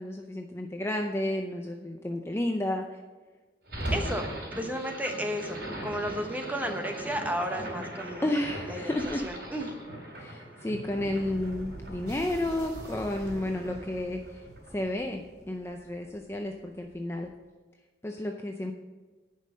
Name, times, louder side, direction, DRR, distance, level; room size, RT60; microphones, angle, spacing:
voice 1, 0.0-3.0 8.2-9.2 10.1-14.4 14.7-17.3 18.0-18.7, left 1 dB, 15° left, 3 dB, 0.5 m, -32 dB
sound 1, 3.7-15.9, right 1 dB, 65° right, 3.4 m, -39 dB
voice 2, 3.9-8.3 8.7-9.7, equal, 10° right, 4 dB, 1.0 m, -33 dB
10.0 x 5.6 x 7.5 m, 1.3 s
head